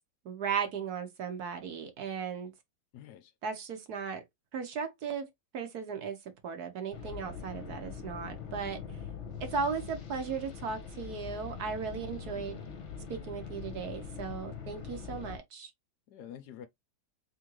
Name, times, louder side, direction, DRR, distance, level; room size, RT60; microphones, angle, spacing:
voice 1, 0.2-2.5 3.4-4.2 4.5-6.2 6.4-8.8 9.4-12.6 13.1-15.7, right 6 dB, 65° right, 1.4 m, -36 dB
voice 2, 2.9-3.3 12.0-12.6 16.1-16.7, left 10 dB, 70° left, 1.1 m, -49 dB
sound 1, 6.9-15.4, left 7 dB, 45° left, 1.2 m, -43 dB
3.8 x 3.5 x 3.0 m
omnidirectional pair, 1.9 m